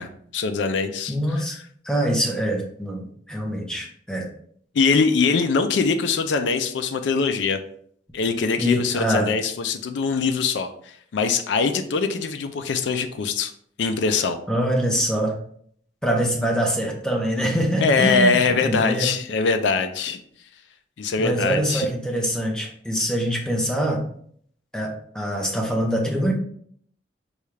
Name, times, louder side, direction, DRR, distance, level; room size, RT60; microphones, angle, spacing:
voice 1, 0.0-1.4 4.7-7.6 8.1-13.5 13.8-14.4 17.8-20.2 21.0-21.9, left 4 dB, 80° left, 8 dB, 0.4 m, -23 dB
voice 2, 1.1-1.6 1.8-4.3 8.6-9.3 14.5-15.4 16.0-19.1 21.2-24.1 24.7-26.3, equal, 5° left, -1 dB, 0.7 m, -24 dB
5.4 x 2.3 x 3.2 m, 0.63 s
head